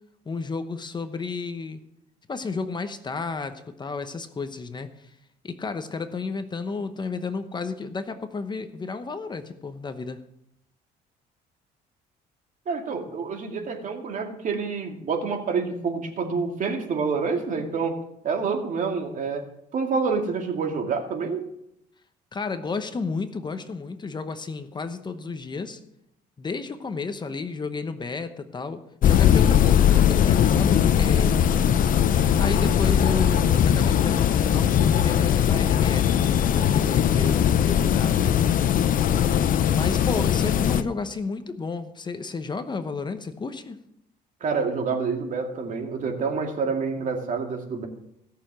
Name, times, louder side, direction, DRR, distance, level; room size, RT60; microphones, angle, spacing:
voice 1, 0.3-1.8 2.3-5.1 5.4-10.2 22.3-25.8 26.4-31.4 32.4-38.4 39.7-43.8, left 4 dB, 25° left, 9 dB, 0.9 m, -32 dB
voice 2, 12.7-18.0 18.2-19.4 19.7-21.5 44.4-47.9, right 5 dB, 50° right, 3 dB, 2.3 m, -27 dB
sound 1, 29.0-40.8, left 9 dB, 55° left, 0.7 m, -20 dB
17.0 x 6.8 x 6.2 m, 0.78 s
cardioid pair, 110°, 17 cm